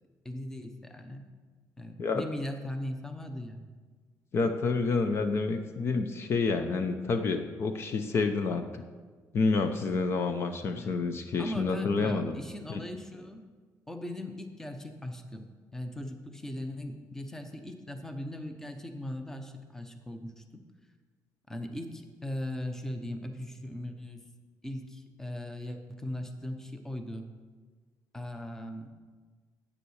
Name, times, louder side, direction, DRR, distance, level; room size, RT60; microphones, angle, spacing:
voice 1, 0.2-1.3 1.8-3.6 10.7-11.0 11.4-13.4 13.9-20.6 21.5-24.2 24.6-27.3 28.1-28.9, left 1 dB, 5° left, 6 dB, 0.8 m, -39 dB
voice 2, 4.3-8.8 9.3-12.4 12.7-12.8, left 4 dB, 40° left, 8 dB, 0.7 m, -29 dB
9.9 x 8.5 x 6.5 m, 1.4 s
cardioid pair, 155°, 6 cm